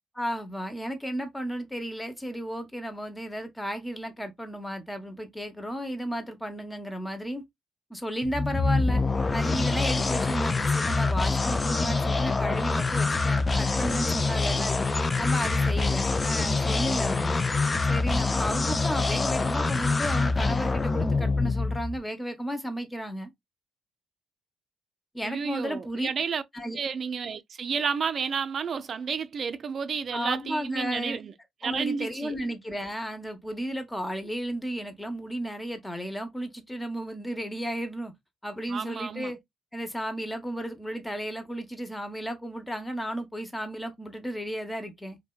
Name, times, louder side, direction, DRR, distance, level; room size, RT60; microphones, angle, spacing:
voice 1, 0.1-7.4 7.9-9.0 9.3-14.8 15.2-17.4 17.9-23.3 25.1-26.1 26.5-26.8 30.1-31.2 31.6-38.1 38.4-39.4 39.7-45.2, equal, 10° left, 0.8 m, -33 dB
sound 1, 8.2-22.0, left 3 dB, 30° left, 0.4 m, -25 dB
voice 2, 25.2-26.4 26.8-31.3 31.6-32.4 38.7-39.3, right 6 dB, 55° right, 0.4 m, -31 dB
2.6 x 2.2 x 2.3 m
supercardioid pair, 60°, 0 cm